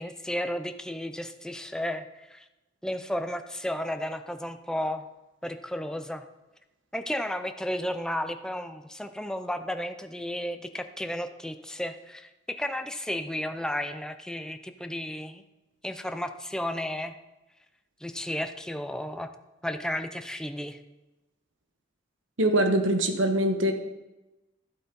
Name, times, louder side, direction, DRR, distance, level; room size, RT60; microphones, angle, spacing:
voice 1, 0.0-2.4 2.8-5.1 5.4-6.2 6.9-15.4 15.8-17.1 18.0-19.3 19.6-20.8, left 1 dB, 5° left, 8 dB, 0.5 m, -33 dB
voice 2, 22.4-23.7, right 1 dB, 85° right, 6 dB, 1.3 m, -23 dB
12.0 x 8.1 x 5.3 m, 1.0 s
head